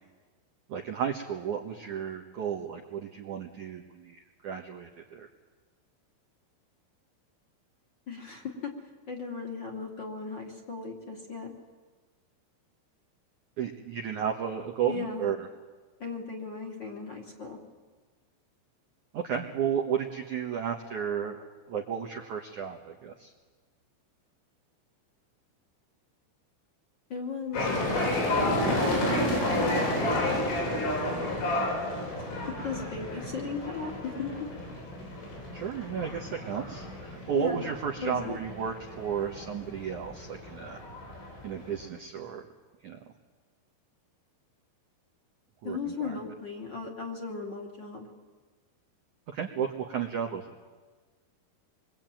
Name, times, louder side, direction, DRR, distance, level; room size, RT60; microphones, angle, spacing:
voice 1, 0.7-5.3 13.6-15.5 19.1-23.3 35.5-40.8 41.4-42.4 42.8-43.0 45.6-46.2 49.3-50.4, right 8 dB, 70° right, 1 dB, 1.8 m, -33 dB
voice 2, 8.1-8.7 9.1-11.5 14.9-15.3 16.0-17.6 27.1-28.2 32.2-34.5 37.3-37.6 38.0-38.4 45.6-48.1, left 4 dB, 30° left, 1 dB, 2.6 m, -37 dB
sound 1, 27.5-41.8, left 1 dB, 75° left, 10.5 m, -31 dB
26.5 x 23.5 x 9.1 m, 1.4 s
omnidirectional pair, 5.6 m